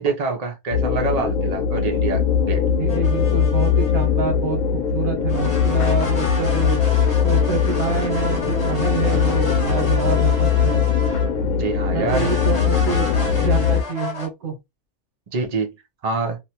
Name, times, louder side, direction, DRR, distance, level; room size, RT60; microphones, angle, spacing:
voice 1, 0.0-2.6 11.6-12.3 15.3-15.7 16.0-16.4, right 3 dB, 65° right, 0.4 m, -25 dB
sound 1, 0.7-13.8, left 7 dB, 85° left, 1.0 m, -20 dB
voice 2, 2.7-4.6 4.9-6.8 7.2-10.8 11.9-13.0 13.4-14.5, right 5 dB, 80° right, 1.3 m, -27 dB
sound 2, 2.9-4.1 5.3-11.4 12.1-14.3, left 2 dB, 25° left, 0.8 m, -32 dB
3.0 x 2.1 x 2.8 m
omnidirectional pair, 1.5 m